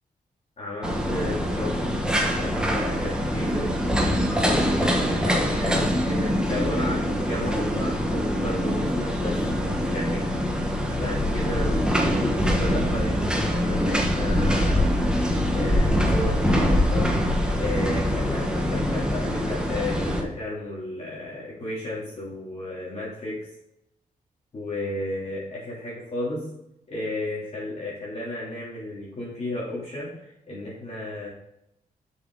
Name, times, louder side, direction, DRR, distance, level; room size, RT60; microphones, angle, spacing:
voice 1, 0.6-2.0 2.2-3.7 4.4-10.2 11.0-14.9 15.5-17.1 17.6-23.3 24.5-26.4 26.9-31.3, left 1 dB, 45° left, -7 dB, 3.1 m, -33 dB
sound 1, 0.8-20.2, equal, 5° right, 1.4 m, -24 dB
7.2 x 6.4 x 4.0 m, 0.83 s
cardioid pair, 110°, 15 cm